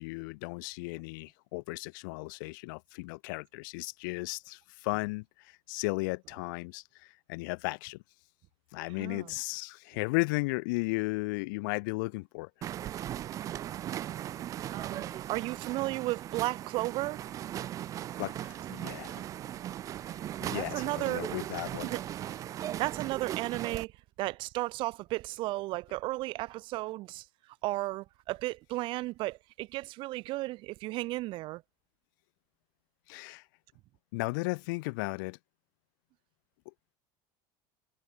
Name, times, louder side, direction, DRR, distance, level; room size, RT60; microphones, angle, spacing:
voice 1, 0.0-8.0 8.7-12.5 18.2-19.2 20.4-21.9 33.1-33.4 34.1-35.4, left 26 dB, 80° left, 1.0 m, -35 dB
voice 2, 9.0-9.3 14.7-17.2 20.2-21.2 21.8-22.0 22.7-23.9 24.2-27.3 27.6-31.6, right 19 dB, 50° right, 1.1 m, -34 dB
sound 1, 12.6-23.9, right 12 dB, 30° right, 0.4 m, -38 dB
cardioid pair, 145°, 10 cm